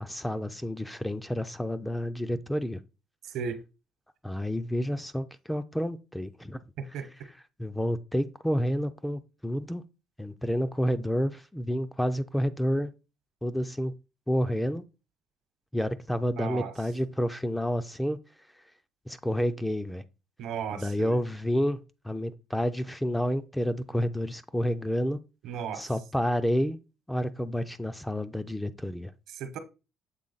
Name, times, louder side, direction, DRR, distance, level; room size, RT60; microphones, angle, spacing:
voice 1, 0.0-2.8 4.2-6.6 7.6-9.8 10.2-12.9 13.4-13.9 14.3-14.8 15.7-18.2 19.1-20.0 20.7-21.8 22.0-25.2 25.7-26.8 27.1-29.1, equal, 5° left, 0.3 m, -29 dB
voice 2, 6.8-7.1 16.4-16.7 20.4-21.2 25.4-25.9 29.3-29.6, right 7 dB, 75° right, 0.9 m, -35 dB
7.5 x 3.7 x 3.9 m
cardioid pair, 140°, 0 cm